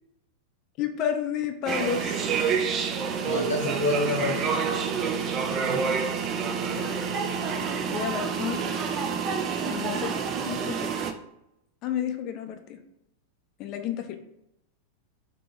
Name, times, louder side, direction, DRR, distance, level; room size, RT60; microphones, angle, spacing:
voice 1, 0.8-2.2 6.7-7.0 7.9-8.7 9.6-11.0 11.8-12.8 13.6-14.2, left 9 dB, 40° left, 7 dB, 0.4 m, -31 dB
sound 1, 1.7-11.1, right 6 dB, 30° right, 0.4 m, -28 dB
voice 2, 3.2-4.5 5.5-5.9, left 2 dB, 70° left, -2 dB, 0.9 m, -29 dB
3.8 x 2.8 x 3.5 m, 0.84 s
figure-of-eight pair, 90°, 0 cm